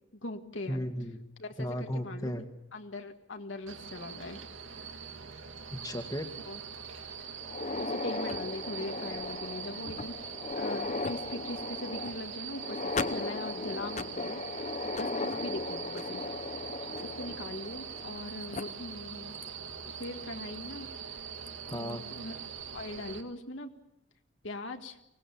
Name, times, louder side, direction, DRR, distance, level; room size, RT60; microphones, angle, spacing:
voice 1, 0.1-0.8 1.4-2.3 2.7-4.4 6.5-6.6 7.8-16.2 16.6-19.3 19.8-21.2 21.7-22.4 22.7-23.7 24.4-25.0, left 2 dB, 70° left, 4 dB, 1.8 m, -41 dB
voice 2, 0.7-1.2 1.6-2.5 5.7-6.3 21.7-22.0, equal, 20° left, 6 dB, 1.9 m, -35 dB
sound 1, 3.7-23.2, right 7 dB, 80° right, 2.1 m, -43 dB
sound 2, 7.4-18.2 18.5-18.6 19.4-19.5 20.0-20.1 21.5-21.7, left 3 dB, 35° left, 0.8 m, -37 dB
24.0 x 18.5 x 7.2 m, 0.85 s
head